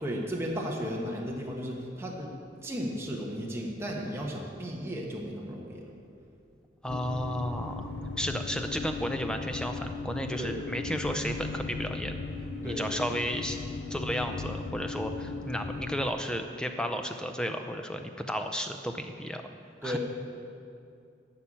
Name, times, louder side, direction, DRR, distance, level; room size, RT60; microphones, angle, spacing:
voice 1, 0.0-2.3 2.6-5.8 10.4-10.6 12.6-12.9 19.8-20.0, equal, 15° right, -2 dB, 1.3 m, -34 dB
voice 2, 6.8-7.9 8.2-12.2 12.6-13.6 13.9-19.4 19.8-20.0, equal, 5° left, 5 dB, 0.5 m, -33 dB
sound 1, 6.9-16.1, left 3 dB, 60° left, 0.6 m, -37 dB
11.5 x 5.8 x 8.5 m, 2.5 s
head